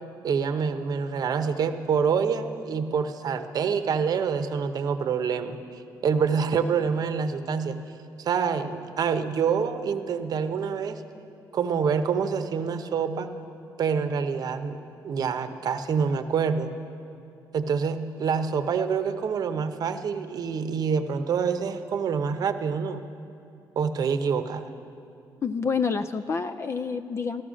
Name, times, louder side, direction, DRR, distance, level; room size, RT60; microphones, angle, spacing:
voice 1, 0.2-5.6 6.0-7.8 8.2-11.0 11.5-13.3 13.8-14.8 15.0-16.7 17.5-23.0 23.8-24.7, right 6 dB, 50° right, 9 dB, 0.8 m, -26 dB
voice 2, 25.4-27.4, left 5 dB, 35° left, 9 dB, 0.4 m, -28 dB
13.5 x 13.0 x 6.3 m, 2.6 s
cardioid pair, 95°, 8 cm